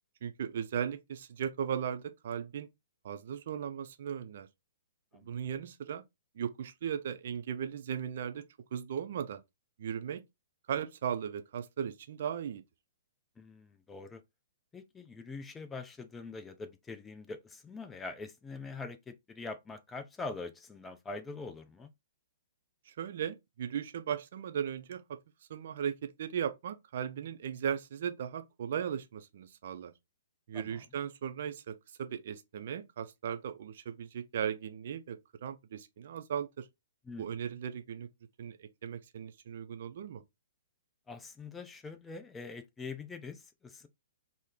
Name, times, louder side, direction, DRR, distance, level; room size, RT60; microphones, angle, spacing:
voice 1, 0.2-2.7 3.0-4.5 5.1-6.0 6.4-8.4 8.7-9.4 9.8-10.2 10.7-12.6 22.9-25.2 25.5-29.9 30.5-36.7 37.2-38.1 38.4-40.2, right 8 dB, 50° right, 0.4 m, -37 dB
voice 2, 13.4-14.2 14.7-21.9 30.5-30.8 37.0-37.2 41.1-43.9, left 3 dB, 10° left, 0.4 m, -44 dB
3.1 x 2.0 x 3.6 m
figure-of-eight pair, 115°, 0 cm